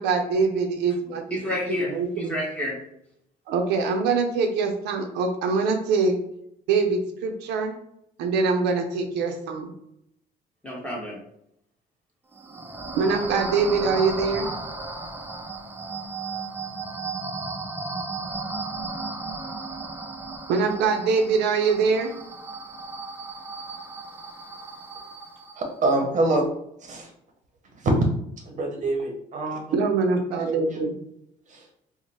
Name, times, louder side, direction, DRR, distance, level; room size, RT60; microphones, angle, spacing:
voice 1, 0.0-1.4 1.8-2.4 3.5-6.1 6.7-7.7 8.2-9.7 13.0-14.5 20.5-22.1 29.7-30.9, right 4 dB, 85° right, 0.6 m, -23 dB
voice 2, 1.3-2.8 10.6-11.2, left 1 dB, 5° left, 1.3 m, -30 dB
sound 1, 12.3-25.7, right 3 dB, 10° right, 0.4 m, -35 dB
voice 3, 25.6-26.5 26.9-27.1 27.8-27.9 28.5-29.6 30.5-30.6 31.5-31.6, right 2 dB, 45° right, 0.8 m, -24 dB
3.0 x 2.1 x 4.1 m
cardioid pair, 110°, 17 cm